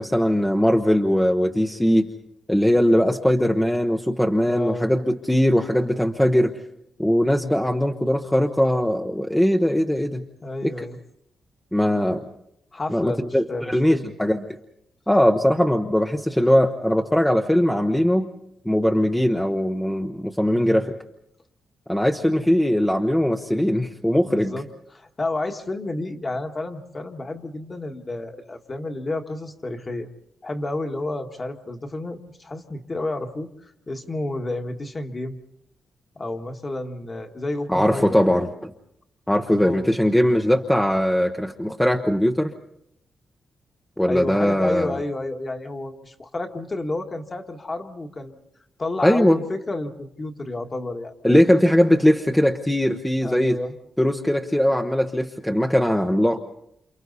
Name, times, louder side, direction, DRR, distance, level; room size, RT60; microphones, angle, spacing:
voice 1, 0.0-2.1 2.5-6.5 7.0-10.2 10.6-10.9 11.7-12.2 12.9-14.4 15.1-18.3 18.6-20.9 21.9-24.5 37.7-38.7 39.3-42.5 44.0-45.0 49.0-49.4 51.2-53.6 54.0-56.4, equal, 5° left, 3 dB, 0.9 m, -20 dB
voice 2, 4.4-4.9 10.4-11.0 12.7-14.1 20.5-20.9 24.3-24.6 24.9-30.1 30.4-33.5 33.9-35.4 36.1-38.2 39.5-39.9 44.0-48.4 48.8-51.1 53.2-53.7, left 2 dB, 25° left, 4 dB, 1.7 m, -30 dB
28.5 x 28.5 x 4.1 m, 0.76 s
wide cardioid pair, 140°, 0 cm